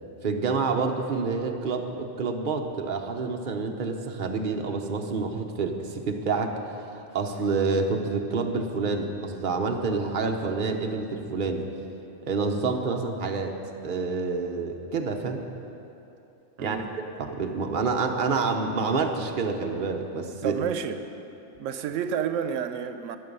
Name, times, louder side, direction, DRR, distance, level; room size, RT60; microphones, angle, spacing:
voice 1, 0.2-6.5 6.9-11.7 12.3-13.6 13.8-15.4 16.6-20.6, right 4 dB, 45° right, 3 dB, 1.0 m, -28 dB
voice 2, 16.6-16.9 20.4-21.2 21.5-23.2, right 8 dB, 90° right, 9 dB, 1.0 m, -30 dB
21.0 x 7.1 x 5.4 m, 2.9 s
omnidirectional pair, 1.3 m